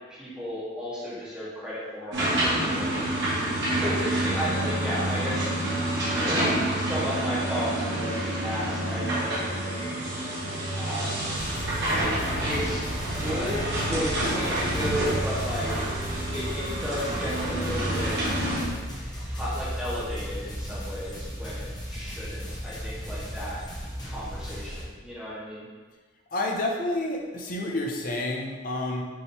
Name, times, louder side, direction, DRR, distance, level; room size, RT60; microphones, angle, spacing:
voice 1, 0.1-3.1 3.7-5.5 6.1-10.0 10.8-11.3 12.4-15.7 16.3-18.2 19.2-23.6 24.0-25.7, equal, 5° right, -10 dB, 1.4 m, -34 dB
sound 1, 2.1-18.6, right 1 dB, 60° right, 1.3 m, -28 dB
sound 2, 11.3-24.8, equal, 20° left, 0.8 m, -36 dB
voice 2, 26.3-29.0, left 1 dB, 45° left, 1 dB, 0.5 m, -29 dB
5.4 x 3.1 x 3.2 m, 1.4 s
head